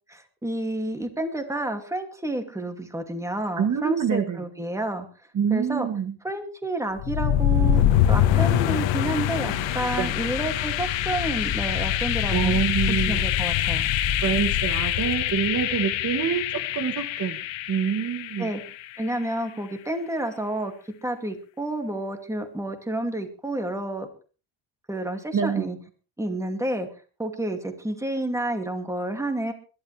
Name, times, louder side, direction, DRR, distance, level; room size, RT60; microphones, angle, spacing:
voice 1, 0.1-5.1 5.5-5.9 6.2-12.5 12.9-13.9 18.4-18.6 19.0-20.7 21.0-24.1 24.9-25.8 26.2-26.9 27.2-29.5, right 1 dB, 5° right, 5 dB, 2.6 m, -30 dB
voice 2, 3.6-4.5 5.3-6.1 10.0-10.1 12.3-13.2 14.2-17.4 17.7-18.5 25.3-25.7, right 7 dB, 40° right, 8 dB, 1.5 m, -26 dB
sound 1, 7.0-18.8, left 11 dB, 85° left, 1.7 m, -24 dB
21.5 x 12.0 x 3.4 m, 0.37 s
cardioid pair, 110°, 44 cm